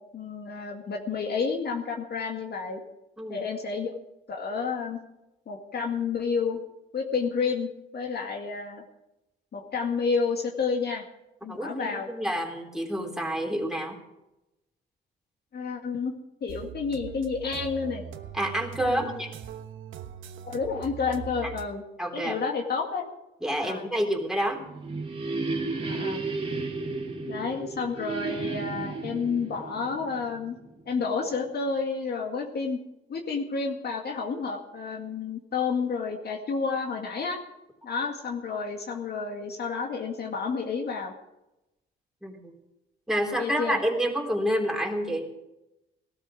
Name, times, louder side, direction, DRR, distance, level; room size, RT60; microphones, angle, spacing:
voice 1, 0.1-2.8 3.3-4.0 4.3-5.0 5.5-6.6 6.9-7.7 7.9-8.8 9.5-11.0 11.4-12.1 15.5-16.1 16.4-18.0 18.8-19.2 20.4-21.8 22.1-23.1 23.6-23.9 25.8-26.2 27.3-30.6 30.9-32.8 33.1-37.4 37.8-41.1 43.4-43.8, left 5 dB, 55° left, 2 dB, 2.0 m, -30 dB
voice 2, 11.5-14.0 18.3-19.3 21.4-21.5 22.0-22.4 23.4-24.6 42.2-42.6 43.1-45.3, equal, 5° right, 0 dB, 3.6 m, -28 dB
sound 1, 16.5-21.7, right 8 dB, 80° right, 1.2 m, -41 dB
sound 2, 24.3-31.0, right 3 dB, 25° right, 2.4 m, -33 dB
17.0 x 13.0 x 4.9 m, 0.94 s
cardioid pair, 90°, 20 cm